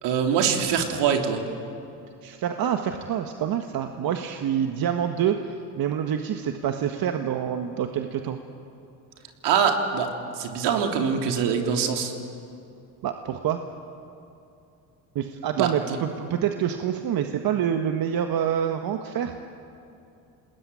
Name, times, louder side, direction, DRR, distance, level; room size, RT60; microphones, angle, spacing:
voice 1, 0.0-1.4 9.4-12.1 15.6-16.0, right 7 dB, 70° right, 3 dB, 3.5 m, -24 dB
voice 2, 2.2-8.4 13.0-13.6 15.1-19.4, right 9 dB, 55° right, 5 dB, 1.7 m, -27 dB
28.0 x 20.5 x 9.2 m, 2.7 s
supercardioid pair, 85°, 43 cm